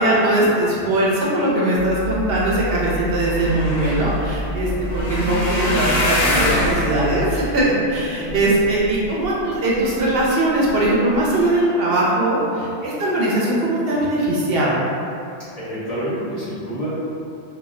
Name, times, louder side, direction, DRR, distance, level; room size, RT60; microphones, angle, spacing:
voice 1, 0.0-14.8, right 1 dB, 65° right, -5 dB, 0.7 m, -20 dB
sound 1, 1.8-7.5, right 2 dB, 10° right, 0.6 m, -29 dB
sound 2, 3.0-9.3 9.8-10.2 10.7-10.9 11.1-11.2, left 1 dB, 75° left, 0.9 m, -25 dB
voice 2, 15.6-16.9, equal, 45° left, -10 dB, 0.6 m, -29 dB
2.2 x 2.1 x 3.6 m, 2.6 s
omnidirectional pair, 1.1 m